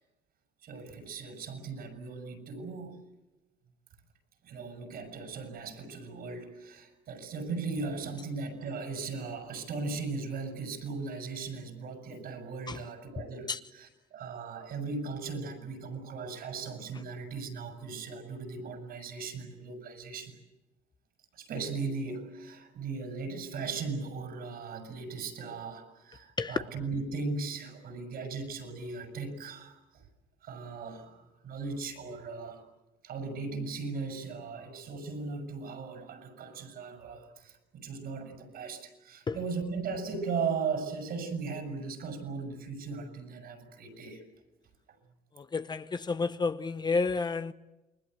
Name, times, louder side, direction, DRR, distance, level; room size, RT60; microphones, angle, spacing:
voice 1, 0.6-3.0 4.4-20.4 21.3-30.0 30.4-32.6 33.0-44.2, right 4 dB, 65° right, 6.8 m, -38 dB
voice 2, 45.4-47.5, left 4 dB, 25° left, 0.9 m, -30 dB
29.0 x 21.5 x 8.0 m
cardioid pair, 110°, 17 cm